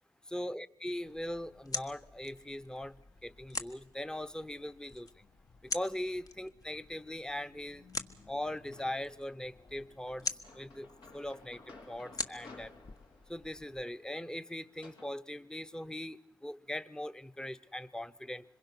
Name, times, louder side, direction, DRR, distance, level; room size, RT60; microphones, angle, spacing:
voice 1, 0.3-3.0 3.2-5.2 5.6-7.8 8.3-10.9 11.1-11.6 11.9-12.7 13.3-18.4, left 1 dB, 10° left, 1.0 m, -40 dB
sound 1, 1.1-13.8, left 3 dB, 50° left, 1.5 m, -45 dB
sound 2, 8.7-9.3 10.1-15.1, left 3 dB, 75° left, 3.3 m, -56 dB
26.0 x 22.0 x 6.2 m
cardioid pair, 65°, 8 cm